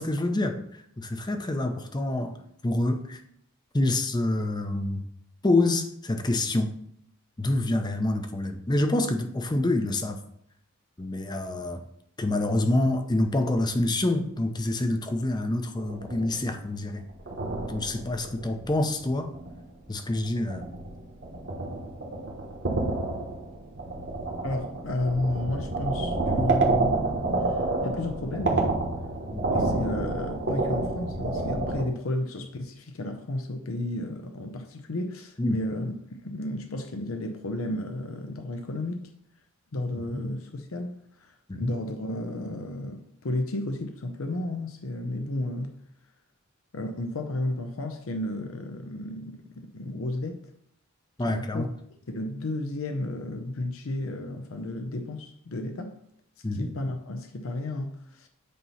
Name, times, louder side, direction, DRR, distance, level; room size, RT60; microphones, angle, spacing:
voice 1, 0.0-2.4 2.6-3.2 3.7-5.1 5.4-6.7 7.4-10.2 11.0-11.8 12.2-17.0 17.7-19.3 19.9-20.6 29.3-29.4 35.4-35.6 40.1-40.2 41.5-41.7 51.2-51.7 56.4-56.7, left 2 dB, 20° left, 0.6 m, -27 dB
sound 1, 15.8-16.5 17.0-19.7 20.1-31.8, right 2 dB, 55° right, 1.3 m, -29 dB
voice 2, 24.4-27.0 27.8-28.8 29.5-35.9 36.2-39.1 39.7-45.7 46.7-50.5 51.3-51.7 52.1-55.9 56.5-58.3, left 1 dB, 70° left, 0.6 m, -32 dB
8.3 x 3.0 x 5.6 m
head